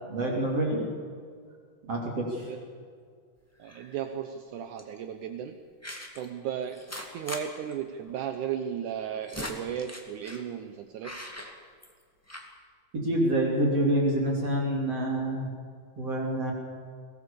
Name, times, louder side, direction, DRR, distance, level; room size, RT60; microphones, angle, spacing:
voice 1, 0.1-0.9 1.8-2.5 13.0-15.5 16.0-16.5, right 1 dB, 45° right, 0 dB, 3.9 m, -27 dB
sound 1, 3.6-4.0 4.8-5.0 5.8-6.3 6.7-7.4 7.7-7.8 8.1-8.2 8.9-10.5 11.0-12.0 12.3-12.5, left 1 dB, 5° left, 1.4 m, -41 dB
voice 2, 3.6-5.6 6.2-6.8 7.1-11.1, right 9 dB, 70° right, 7 dB, 2.3 m, -35 dB
23.0 x 18.0 x 7.0 m, 2.1 s
omnidirectional pair, 3.9 m